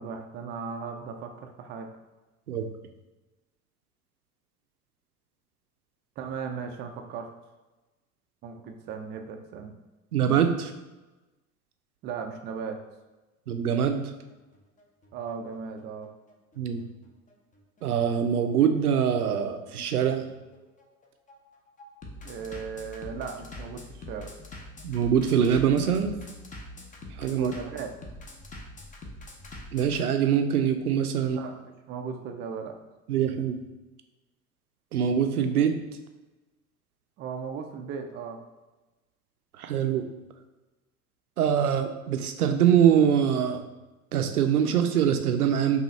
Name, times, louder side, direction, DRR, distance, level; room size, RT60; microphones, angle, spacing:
voice 1, 0.0-1.9 6.2-7.3 8.4-9.7 12.0-12.8 15.1-16.1 22.2-24.3 27.4-27.9 31.2-32.8 37.2-38.4, right 6 dB, 25° right, 4 dB, 0.4 m, -37 dB
voice 2, 10.1-10.7 13.5-14.1 16.6-16.8 17.8-20.3 24.8-26.1 27.2-27.5 29.7-31.4 33.1-33.6 34.9-35.8 39.6-40.1 41.4-43.6 44.1-45.8, right 8 dB, 80° right, 7 dB, 0.6 m, -23 dB
Bass drum, 14.0-30.0, left 2 dB, 20° left, 0.7 m, -44 dB
5.3 x 2.4 x 3.2 m, 1.1 s
figure-of-eight pair, 75°, 44 cm